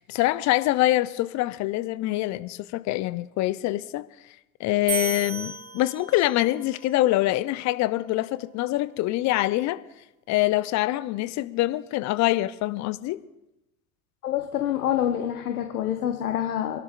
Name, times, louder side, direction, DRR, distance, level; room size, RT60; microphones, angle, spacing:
voice 1, 0.0-4.0 4.6-9.8 10.3-13.2, left 16 dB, 40° left, 0.7 m, -25 dB
sound 1, 4.9-6.5, right 5 dB, 65° right, 3.5 m, -33 dB
voice 2, 14.2-16.8, left 11 dB, 75° left, 1.2 m, -26 dB
26.5 x 12.0 x 2.5 m
hypercardioid pair, 80°, 44 cm